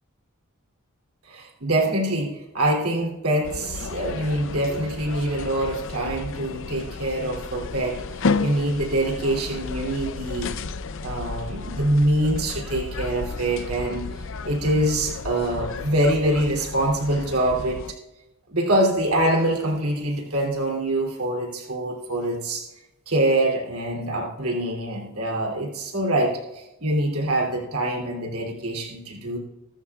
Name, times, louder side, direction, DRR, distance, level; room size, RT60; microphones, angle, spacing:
voice 1, 1.3-8.0 8.4-10.5 11.0-14.1 14.4-17.8 18.5-22.6 23.1-29.4, right 1 dB, 70° right, -1 dB, 3.0 m, -24 dB
sound 1, 3.4-17.9, left 4 dB, 60° left, 0.6 m, -32 dB
23.0 x 12.5 x 2.4 m, 0.97 s
head